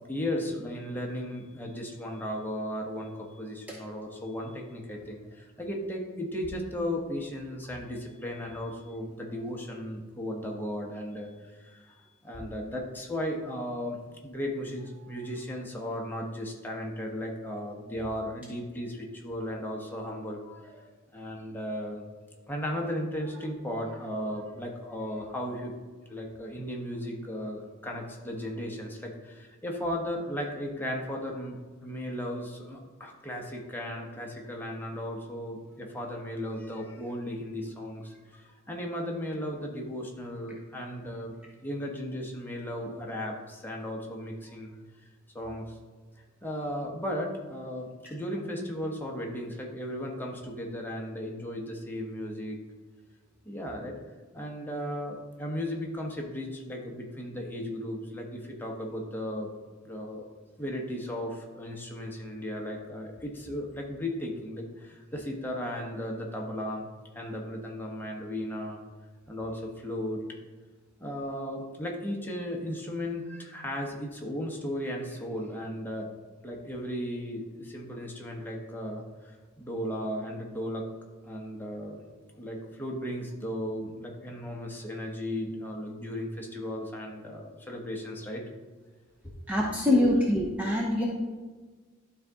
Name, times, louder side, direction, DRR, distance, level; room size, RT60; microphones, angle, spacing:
voice 1, 0.1-20.8 21.1-22.0 22.5-25.7 26.0-41.3 41.6-44.8 45.3-45.8 46.4-52.6 53.4-53.9 54.3-59.5 59.8-60.3 60.6-66.9 67.1-68.8 69.3-70.2 71.0-76.1 76.4-80.9 81.2-82.0 82.4-88.4 89.2-89.3 89.9-90.0, equal, 10° left, -1 dB, 1.1 m, -36 dB
voice 2, 89.5-91.1, left 1 dB, 5° right, -3 dB, 0.8 m, -24 dB
12.0 x 4.0 x 3.6 m, 1.4 s
head